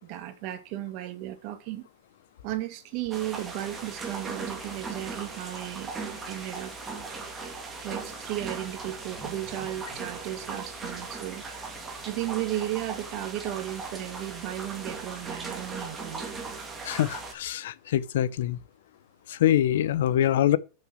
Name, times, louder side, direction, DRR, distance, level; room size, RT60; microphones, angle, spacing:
voice 1, 0.0-1.9 2.4-5.9 6.3-6.7 7.8-11.4 12.0-16.2, right 14 dB, 45° right, 1.6 m, -35 dB
sound 1, 3.1-17.3, right 4 dB, 15° right, 2.1 m, -38 dB
voice 2, 16.8-18.6 19.3-20.6, left 11 dB, 75° left, 0.6 m, -24 dB
6.5 x 6.1 x 6.2 m
supercardioid pair, 140°, 0 cm